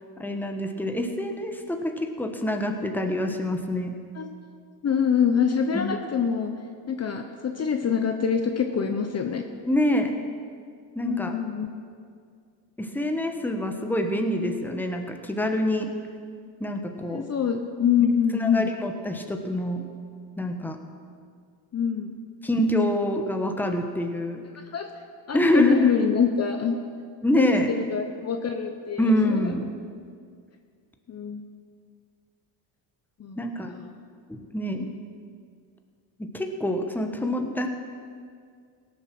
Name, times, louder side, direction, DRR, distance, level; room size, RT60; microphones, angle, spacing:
voice 1, 0.2-3.9 5.7-6.0 9.6-10.1 10.9-11.4 12.8-15.9 16.6-17.2 18.3-19.8 20.4-20.8 22.4-24.4 25.3-25.9 27.2-27.7 29.0-29.7 33.4-33.7 34.3-34.9 36.2-37.7, left 1 dB, 5° left, 4 dB, 1.1 m, -26 dB
voice 2, 4.8-6.5 6.9-9.4 11.0-11.7 17.1-18.7 21.7-22.2 24.7-24.9 25.3-26.8 27.3-29.0 31.1-31.4 33.2-33.4 33.7-33.9 34.8-34.9, left 7 dB, 35° left, 5 dB, 0.8 m, -25 dB
17.5 x 7.4 x 6.1 m, 2.2 s
cardioid pair, 110°, 45 cm